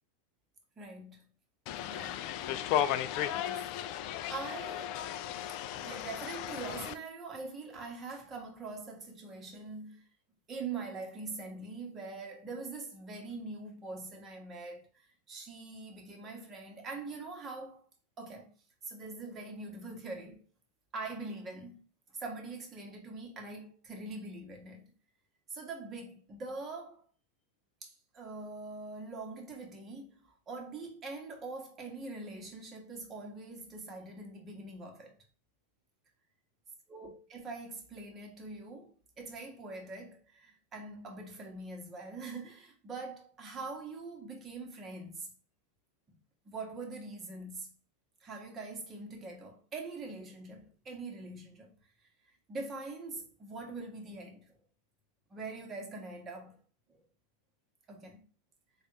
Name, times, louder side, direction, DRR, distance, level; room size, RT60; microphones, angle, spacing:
voice 1, 0.8-1.3 1.9-2.1 3.3-3.7 4.3-5.1 5.8-10.1 10.5-17.9 18.2-18.5 18.8-20.4 20.9-21.8 22.1-24.9 25.5-27.0 27.8-35.1 36.9-45.3 46.4-47.7 48.2-51.7 52.5-54.6 55.3-56.6 56.9-57.0 57.9-58.2, right 3 dB, 30° right, 1.3 m, -43 dB
sound 1, 1.7-6.9, left 11 dB, 55° left, 0.3 m, -35 dB
3.5 x 2.5 x 4.5 m
hypercardioid pair, 95°, 0 cm